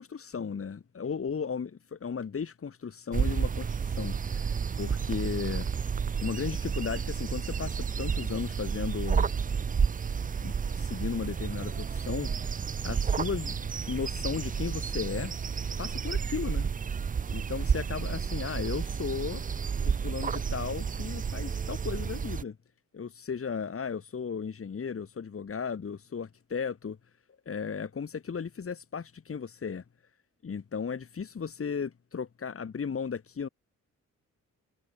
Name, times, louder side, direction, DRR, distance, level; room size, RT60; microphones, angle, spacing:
voice 1, 0.0-5.7 6.2-9.3 10.4-15.3 15.8-16.7 17.3-19.4 19.8-22.6 22.9-27.0 27.5-29.8 30.4-33.5, left 6 dB, 45° left, 3.7 m, -35 dB
sound 1, 3.1-22.4, right 6 dB, 25° right, 0.5 m, -31 dB
cardioid pair, 95°, 32 cm